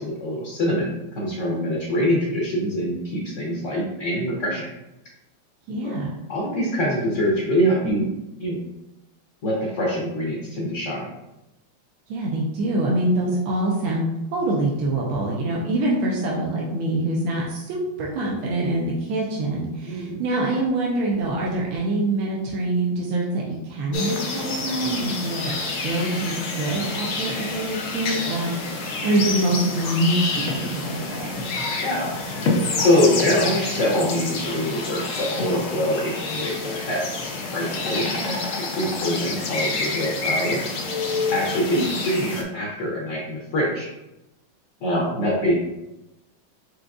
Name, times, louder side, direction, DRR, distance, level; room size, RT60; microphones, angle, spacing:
voice 1, 0.0-4.7 5.8-5.9 6.3-8.1 8.4-8.6 9.4-11.1 19.9-20.2 31.8-32.1 32.8-37.0 37.5-40.6 41.3-43.9 44.8-45.5, equal, 55° left, -3 dB, 0.9 m, -24 dB
voice 2, 5.7-6.2 12.1-25.5 25.8-31.4 38.0-38.4 41.7-41.9, right 1 dB, 90° right, -3 dB, 1.5 m, -25 dB
sound 1, 23.9-42.4, left 3 dB, 85° left, 0.7 m, -28 dB
4.9 x 3.8 x 2.3 m, 0.93 s
omnidirectional pair, 2.2 m